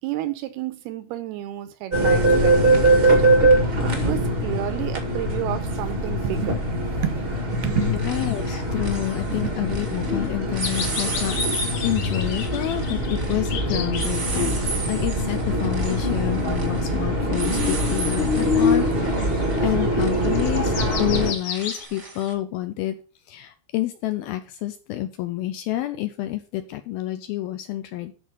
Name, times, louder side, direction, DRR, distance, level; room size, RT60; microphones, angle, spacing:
voice 1, 0.0-3.4 3.8-8.1 9.3-9.4, right 13 dB, 80° right, 2.5 m, -31 dB
sound 1, 1.9-21.3, right 1 dB, 60° right, 0.5 m, -22 dB
sound 2, 5.3-5.4 7.1-7.4 7.7-10.1 10.5-22.3, right 3 dB, 40° right, 1.0 m, -35 dB
voice 2, 7.8-19.3 19.6-23.0 23.3-28.1, left 15 dB, 80° left, 2.2 m, -29 dB
sound 3, 10.6-14.1 14.8-16.1 16.5-17.5 17.9-18.0 18.7-21.9, left 7 dB, 60° left, 2.4 m, -34 dB
12.5 x 4.8 x 6.2 m
omnidirectional pair, 5.0 m